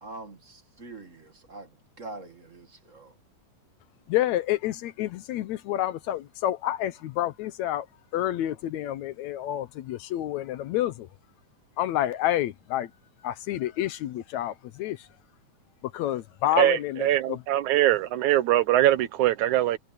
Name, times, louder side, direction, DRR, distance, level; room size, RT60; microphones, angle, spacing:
voice 1, 0.0-3.2, right 2 dB, 30° right, 1.8 m, -44 dB
voice 2, 4.1-7.9 8.1-11.1 11.8-12.9 13.2-15.0 15.9-17.4, left 13 dB, 75° left, 2.0 m, -29 dB
voice 3, 16.6-19.8, right 13 dB, 75° right, 2.2 m, -22 dB
omnidirectional pair, 3.5 m